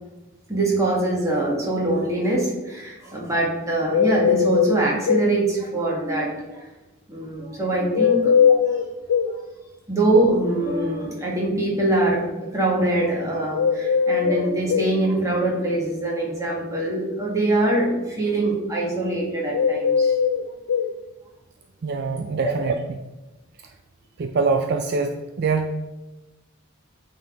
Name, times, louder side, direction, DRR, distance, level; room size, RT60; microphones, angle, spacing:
voice 1, 0.5-6.7 7.1-8.8 9.9-20.2 22.4-22.5, right 2 dB, 15° right, -4 dB, 1.8 m, -23 dB
sound 1, 3.9-5.3 7.9-9.3 13.5-14.9 19.5-20.9, left 7 dB, 80° left, 0.4 m, -20 dB
voice 2, 21.8-22.7 24.2-25.7, right 4 dB, 50° right, 5 dB, 0.4 m, -24 dB
8.7 x 4.0 x 3.8 m, 1.1 s
head